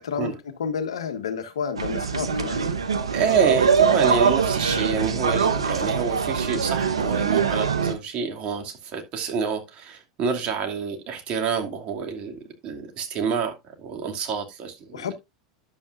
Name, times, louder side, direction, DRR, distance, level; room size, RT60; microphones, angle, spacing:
voice 1, 0.0-2.6 14.9-15.1, left 6 dB, 75° left, 1.4 m, -30 dB
sound 1, 1.8-7.9, right 6 dB, 85° right, 1.1 m, -23 dB
voice 2, 3.1-13.5 13.8-15.1, right 6 dB, 45° right, 2.4 m, -27 dB
11.0 x 7.5 x 2.5 m
hypercardioid pair, 90°, 3 cm